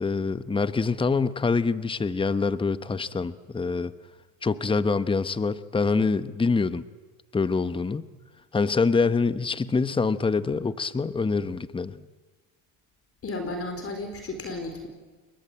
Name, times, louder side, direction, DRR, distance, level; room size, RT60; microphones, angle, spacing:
voice 1, 0.0-3.9 4.4-6.8 7.3-8.1 8.5-12.1, left 4 dB, 10° left, 14 dB, 1.0 m, -25 dB
voice 2, 13.2-14.9, left 2 dB, 35° left, 5 dB, 4.5 m, -33 dB
29.0 x 21.5 x 9.0 m, 1.3 s
supercardioid pair, 105°, 41 cm